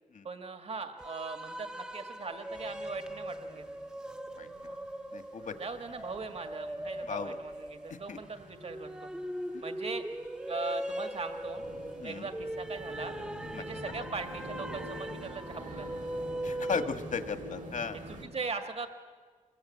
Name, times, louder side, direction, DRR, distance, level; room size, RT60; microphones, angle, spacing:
voice 1, 0.2-3.6 5.6-9.1 9.6-10.0 10.5-11.6 12.0-13.1 13.6-15.9 17.9-18.9, right 4 dB, 50° right, 7 dB, 1.8 m, -40 dB
sound 1, 1.0-16.9, right 1 dB, 5° right, 0.7 m, -40 dB
sound 2, 2.5-18.2, right 1 dB, 85° right, 4.8 m, -48 dB
voice 2, 4.4-4.7 5.1-5.5 7.0-7.4 8.1-8.2 12.0-12.3 13.5-13.6 16.4-18.0, left 5 dB, 75° left, 8 dB, 1.6 m, -36 dB
26.0 x 22.0 x 8.6 m, 1.5 s
wide cardioid pair, 160°, 13 cm